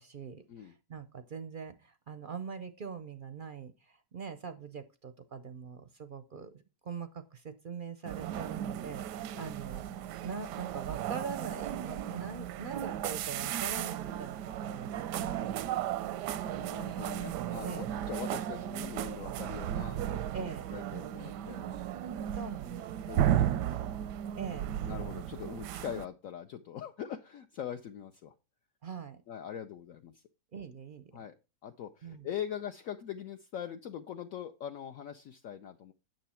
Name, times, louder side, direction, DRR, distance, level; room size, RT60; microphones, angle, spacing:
voice 1, 0.0-9.8 10.2-16.2 17.6-17.9 20.3-20.7 22.3-23.1 24.4-24.7 28.8-29.2 30.5-31.1 32.0-32.3, right 6 dB, 55° right, 11 dB, 0.6 m, -43 dB
sound 1, 8.1-26.1, right 11 dB, 85° right, 1.2 m, -35 dB
voice 2, 16.4-21.8 23.1-23.9 24.8-28.3 29.3-30.2 31.1-31.3 31.6-35.9, left 9 dB, 65° left, 6 dB, 1.0 m, -42 dB
9.2 x 6.6 x 4.3 m, 0.30 s
omnidirectional pair, 1.8 m